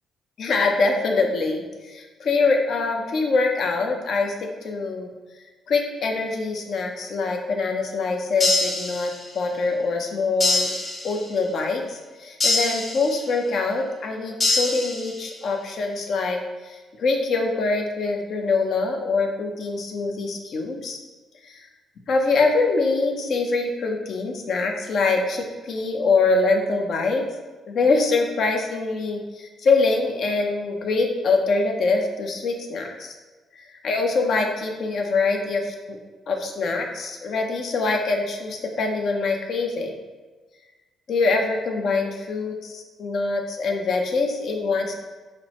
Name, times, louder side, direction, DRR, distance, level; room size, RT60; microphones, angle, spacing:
voice 1, 0.4-4.3 4.6-5.1 5.7-10.7 11.0-21.0 21.4-21.7 22.1-27.3 27.7-33.1 33.6-36.0 36.3-39.9 41.1-44.9, left 3 dB, 65° left, 2 dB, 0.6 m, -24 dB
sound 1, 8.4-9.5 10.4-11.5 12.4-13.5 14.4-15.4, left 2 dB, 25° left, 0.7 m, -25 dB
5.8 x 2.0 x 2.9 m, 1.3 s
cardioid pair, 90°, 0 cm